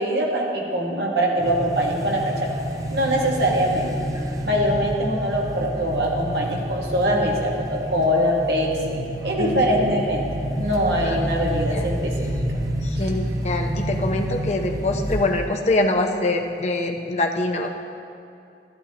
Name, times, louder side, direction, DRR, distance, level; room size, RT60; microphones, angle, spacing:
voice 1, 0.0-2.5 2.9-3.9 4.4-10.2 10.5-12.1 13.0-13.1, equal, 70° right, -2 dB, 1.5 m, -23 dB
sound 1, 1.4-15.6, equal, 20° right, 0.6 m, -29 dB
voice 2, 9.4-9.9 11.0-11.9 12.8-17.7, left 2 dB, 40° left, 3 dB, 0.7 m, -25 dB
13.0 x 11.0 x 2.9 m, 2.5 s
head